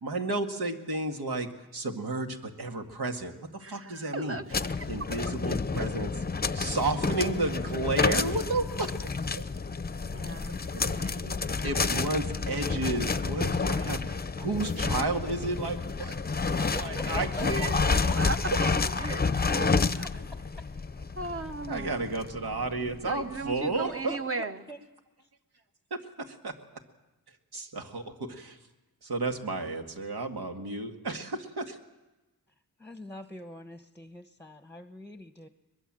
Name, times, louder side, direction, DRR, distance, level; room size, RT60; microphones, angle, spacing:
voice 1, 0.0-4.4 4.9-6.2 6.5-9.4 11.6-17.8 21.7-24.2 25.9-26.5 27.5-28.6 29.0-31.8, right 2 dB, 80° right, 3 dB, 2.2 m, -32 dB
voice 2, 3.6-5.1 10.0-11.7 17.9-20.2 21.1-22.0 23.0-24.7, right 3 dB, 35° right, 8 dB, 1.2 m, -37 dB
sound 1, 4.5-23.3, left 4 dB, 25° left, 0.7 m, -30 dB
voice 3, 16.6-18.4 20.3-20.6 21.8-22.0 22.4-22.5 23.8-24.8 25.2-25.3 32.8-35.5, left 1 dB, 5° left, 8 dB, 1.0 m, -44 dB
22.5 x 21.5 x 7.7 m, 1.1 s
wide cardioid pair, 95°, 38 cm